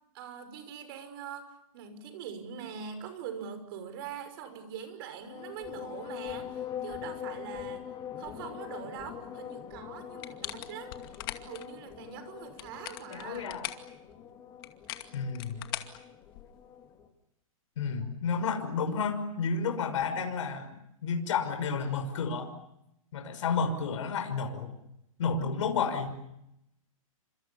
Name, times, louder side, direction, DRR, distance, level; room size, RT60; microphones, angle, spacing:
voice 1, 0.1-7.8 8.1-13.5, right 8 dB, 40° right, 9 dB, 6.0 m, -43 dB
sound 1, 5.2-17.1, left 9 dB, 20° left, 2.8 m, -43 dB
sound 2, 10.2-11.7 12.4-13.9 14.6-16.6, left 15 dB, 40° left, 2.3 m, -41 dB
voice 2, 13.1-13.7 15.1-15.6 17.8-22.5 23.1-24.8 25.2-26.2, left 5 dB, 60° left, 6 dB, 6.1 m, -31 dB
30.0 x 26.5 x 7.2 m, 0.83 s
hypercardioid pair, 160°, 18 cm